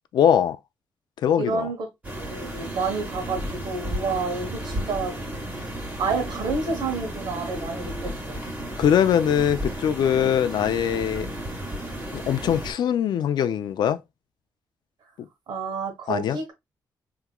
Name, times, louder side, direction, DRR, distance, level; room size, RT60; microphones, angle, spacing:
voice 1, 0.1-0.6 1.2-1.7 8.8-11.3 12.1-14.0 16.1-16.4, left 9 dB, 75° left, 0.4 m, -22 dB
voice 2, 1.4-1.8 2.2-5.1 6.0-8.4 10.2-10.4 15.5-16.5, right 4 dB, 85° right, 1.2 m, -29 dB
sound 1, 2.0-12.7, equal, 20° right, 1.3 m, -33 dB
3.6 x 2.9 x 2.3 m
cardioid pair, 105°, 7 cm